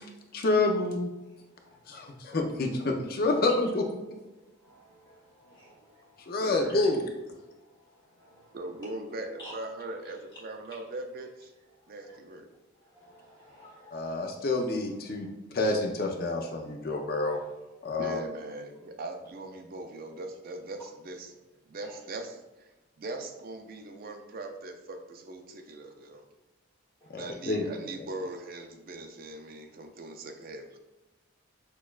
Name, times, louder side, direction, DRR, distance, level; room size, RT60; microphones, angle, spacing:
voice 1, 0.3-1.1 1.9-3.8 6.3-7.0 13.9-15.3 15.5-17.4 17.8-18.2 27.1-27.7, left 2 dB, 45° left, 3 dB, 0.5 m, -28 dB
voice 2, 1.2-2.4 4.6-6.4 7.4-8.6 9.4-9.6 10.7-10.8 11.8-12.2 12.8-14.1 15.1-15.3 21.8-22.0 27.0-27.3, equal, 20° left, -6 dB, 1.3 m, -54 dB
voice 3, 6.4-6.8 8.5-11.5 11.9-12.5 18.0-26.2 27.1-30.8, right 2 dB, 45° right, 5 dB, 0.4 m, -40 dB
6.2 x 2.3 x 2.3 m, 1.0 s
head